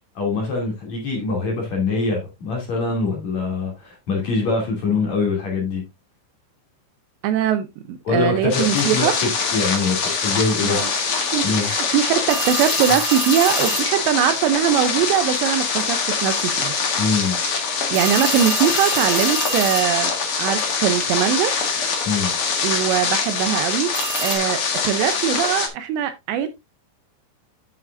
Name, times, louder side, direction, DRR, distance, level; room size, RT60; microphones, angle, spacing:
voice 1, 0.1-5.8 8.0-9.1 9.5-10.8 11.4-11.7 17.0-17.4 22.0-22.3, left 4 dB, 40° left, 3.3 m, -23 dB
voice 2, 7.2-9.2 10.6-10.9 11.3-16.7 17.9-21.5 22.6-24.0 24.2-26.5, right 10 dB, 80° right, 2.8 m, -21 dB
sound 1, 8.5-25.7, left 5 dB, 75° left, 1.2 m, -23 dB
sound 2, 12.3-14.0 17.9-20.2 23.9-24.4, right 6 dB, 55° right, 2.2 m, -29 dB
9.6 x 7.3 x 2.6 m
omnidirectional pair, 5.4 m